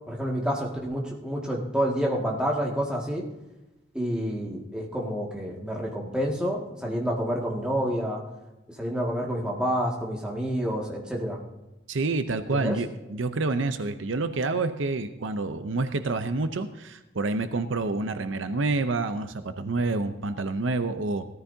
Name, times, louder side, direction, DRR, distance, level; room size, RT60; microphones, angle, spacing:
voice 1, 0.1-3.2 3.9-8.2 8.8-11.4 12.5-12.8, equal, 5° right, -3 dB, 2.0 m, -28 dB
voice 2, 11.9-21.3, right 3 dB, 75° right, 9 dB, 0.7 m, -28 dB
17.5 x 13.5 x 2.8 m, 1.0 s
head